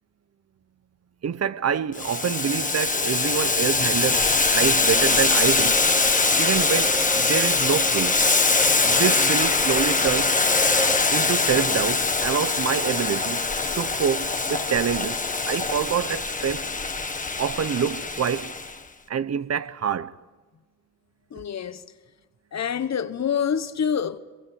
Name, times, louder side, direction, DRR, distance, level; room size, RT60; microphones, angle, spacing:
voice 1, 1.2-5.8 6.4-8.3 8.8-10.4 11.1-13.5 13.8-15.2 15.5-16.7 17.4-18.5 19.1-20.1, right 8 dB, 50° right, 0.9 m, -26 dB
Boiling, 1.9-18.7, left 3 dB, 25° left, 1.5 m, -23 dB
sound 1, 4.9-11.0, right 1 dB, 10° right, 0.9 m, -34 dB
voice 2, 21.3-21.8 22.5-24.2, left 7 dB, 55° left, 1.2 m, -26 dB
23.5 x 22.0 x 8.1 m
cardioid pair, 90°, 32 cm